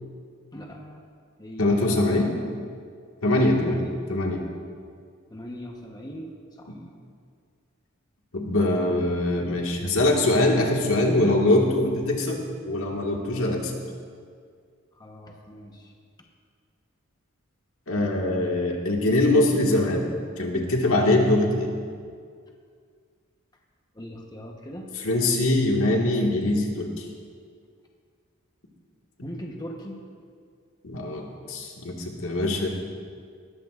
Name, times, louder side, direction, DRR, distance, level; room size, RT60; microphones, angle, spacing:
voice 1, 0.5-1.0 1.4-2.3 3.2-4.0 5.3-6.8 14.9-15.9 23.9-24.9 29.2-30.0, equal, 20° left, 0 dB, 1.0 m, -40 dB
voice 2, 1.6-2.3 3.2-4.4 6.7-6.8 8.3-13.7 17.9-20.1 20.4-21.7 25.0-27.0 30.8-32.7, left 1 dB, 75° left, 0 dB, 1.8 m, -23 dB
19.0 x 14.5 x 2.5 m, 2.1 s
head